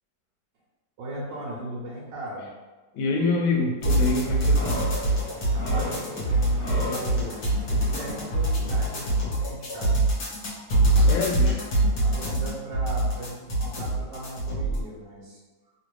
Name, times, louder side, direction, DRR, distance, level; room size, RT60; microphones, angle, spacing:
voice 1, 1.0-2.5 5.5-7.5 7.7-10.0 10.8-11.6 12.0-15.7, right 1 dB, 75° right, -5 dB, 1.3 m, -38 dB
voice 2, 2.9-4.8 11.0-11.6, left 3 dB, 90° left, 1 dB, 1.4 m, -26 dB
sound 1, 3.8-14.8, right 1 dB, 55° left, 1.3 m, -24 dB
sound 2, 4.0-9.2, left 1 dB, 30° left, 0.7 m, -36 dB
3.3 x 2.5 x 3.0 m, 1.3 s
omnidirectional pair, 2.1 m